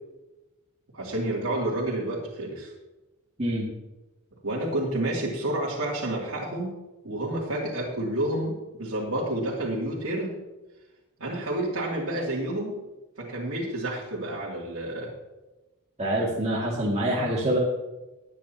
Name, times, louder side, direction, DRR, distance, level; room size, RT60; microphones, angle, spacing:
voice 1, 0.9-2.7 4.4-6.8 7.0-8.5 8.8-10.3 11.2-12.8 13.2-15.1, right 1 dB, 80° right, -7 dB, 3.0 m, -29 dB
voice 2, 16.0-17.6, right 1 dB, 30° right, -6 dB, 2.5 m, -25 dB
21.0 x 9.4 x 3.0 m, 1.1 s
head